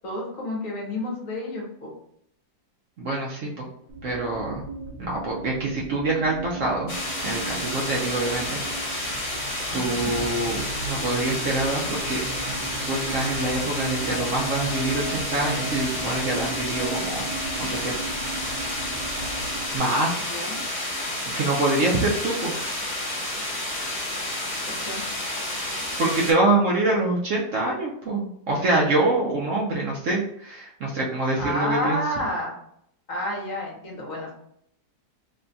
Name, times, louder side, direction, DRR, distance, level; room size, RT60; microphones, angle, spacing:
voice 1, 0.0-1.9 9.7-10.1 20.3-20.6 24.8-25.0 31.4-32.5 33.1-34.3, left 1 dB, 60° left, -2 dB, 1.3 m, -30 dB
voice 2, 3.0-3.6 4.0-4.6 5.0-6.9 7.2-9.3 9.7-10.6 10.8-12.6 12.9-17.3 17.6-18.0 19.7-20.2 21.4-22.5 26.0-32.0, right 2 dB, 60° right, -3 dB, 0.9 m, -25 dB
sound 1, 3.9-19.8, right 3 dB, 80° right, 1.5 m, -36 dB
sound 2, 6.9-26.3, left 1 dB, 30° left, 0.6 m, -30 dB
3.3 x 2.3 x 3.9 m, 0.71 s
omnidirectional pair, 1.7 m